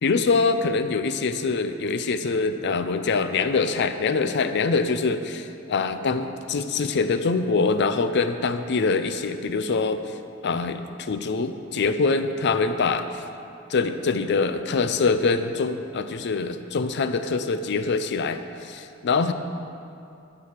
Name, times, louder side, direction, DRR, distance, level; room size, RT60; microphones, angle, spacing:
voice 1, 0.0-10.0 10.4-13.2 13.7-19.3, left 4 dB, 55° left, 9 dB, 0.5 m, -24 dB
11.5 x 4.8 x 6.6 m, 2.7 s
head